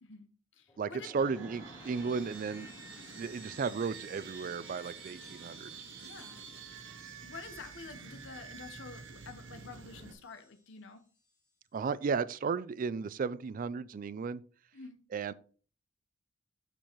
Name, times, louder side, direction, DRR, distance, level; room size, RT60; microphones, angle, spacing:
voice 1, 0.0-1.1 6.0-6.4 7.2-11.0 14.7-15.0, left 4 dB, 65° left, 0.9 m, -49 dB
sound 1, 0.7-10.8 11.1-11.5, left 2 dB, 25° left, 2.4 m, -57 dB
voice 2, 0.8-2.7 3.1-5.7 11.7-14.4 15.1-15.3, right 5 dB, 45° right, 0.3 m, -34 dB
sound 2, 1.1-10.1, right 5 dB, 65° right, 0.8 m, -49 dB
12.0 x 4.5 x 3.0 m
head